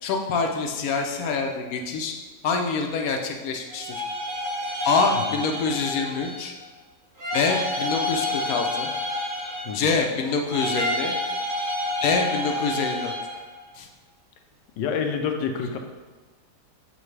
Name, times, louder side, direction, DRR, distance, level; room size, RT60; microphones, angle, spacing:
voice 1, 0.0-2.1 2.4-4.0 4.8-6.5 7.3-8.9 9.7-11.1 12.0-13.1 13.7-13.9, left 4 dB, 65° left, 3 dB, 1.0 m, -25 dB
sound 1, 3.7-6.5 7.2-10.0 10.5-13.4, left 1 dB, 80° right, 2.5 m, -29 dB
voice 2, 14.8-15.8, left 6 dB, 90° left, 5 dB, 1.3 m, -28 dB
8.9 x 3.2 x 3.3 m, 1.3 s
omnidirectional pair, 1.8 m